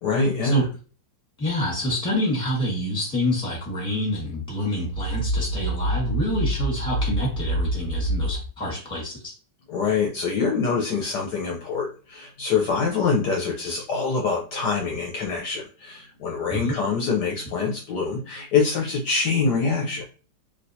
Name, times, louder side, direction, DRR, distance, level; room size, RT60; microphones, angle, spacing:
voice 1, 0.0-0.7 9.7-20.0, left 4 dB, 65° left, -1 dB, 1.1 m, -25 dB
voice 2, 1.4-9.3 16.5-16.7, left 1 dB, 5° left, -3 dB, 1.2 m, -27 dB
sound 1, 4.9-8.5, right 1 dB, 70° right, 1.2 m, -26 dB
3.4 x 2.7 x 2.7 m, 0.36 s
omnidirectional pair, 2.2 m